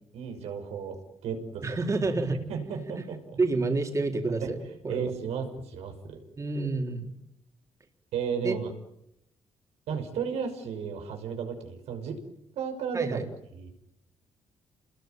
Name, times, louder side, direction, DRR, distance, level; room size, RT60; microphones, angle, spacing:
voice 1, 0.1-1.6 2.5-3.2 4.4-4.5 4.9-6.2 8.1-8.7 9.9-12.2 12.6-13.3 13.5-13.7, right 6 dB, 90° right, 5 dB, 5.9 m, -34 dB
voice 2, 1.6-2.4 2.9-3.0 3.4-4.6 4.8-5.1 6.4-7.1 8.4-8.6 12.9-13.2, right 3 dB, 30° right, 3 dB, 4.0 m, -28 dB
30.0 x 21.5 x 9.3 m, 0.83 s
cardioid pair, 110°, 11 cm